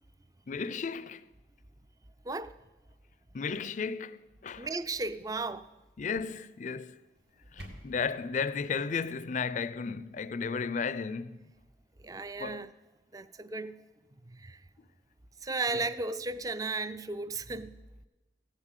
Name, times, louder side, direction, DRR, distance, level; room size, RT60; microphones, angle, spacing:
voice 1, 0.5-1.2 3.3-4.7 6.0-7.0 7.5-11.4 12.4-12.6 15.7-15.9, left 5 dB, 45° left, 0.4 m, -34 dB
voice 2, 2.2-2.6 4.6-5.7 12.0-12.7 13.1-13.8 14.2-14.6 15.4-17.8, right 3 dB, 20° right, 0.4 m, -35 dB
sound 1, 7.1-8.2, equal, 70° right, 2.2 m, -48 dB
15.5 x 7.3 x 8.2 m
head